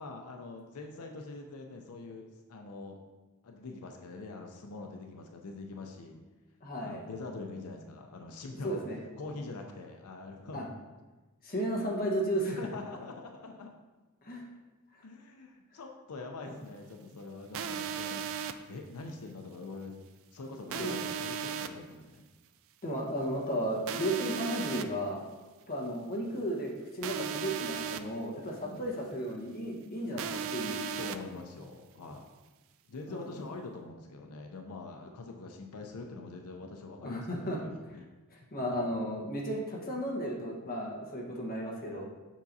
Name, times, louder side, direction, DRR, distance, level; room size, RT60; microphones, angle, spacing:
voice 1, 0.0-3.0 3.4-6.2 6.8-8.8 9.2-10.7 12.6-13.7 15.0-18.2 18.7-20.0 20.3-22.3 28.6-28.9 30.6-32.2 32.9-38.1 38.6-38.9, left 3 dB, 85° left, 3 dB, 0.6 m, -44 dB
voice 2, 6.6-7.0 8.5-9.0 10.5-10.6 11.4-12.6 14.2-14.4 20.7-21.0 22.8-25.2 25.7-30.8 33.1-33.2 37.0-37.6 38.3-42.0, equal, 45° left, -2 dB, 1.2 m, -34 dB
sound 1, 17.5-18.5 20.7-21.7 23.9-24.8 27.0-28.0 30.2-31.2, right 7 dB, 65° right, 0.4 m, -36 dB
7.3 x 5.8 x 2.7 m, 1.2 s
head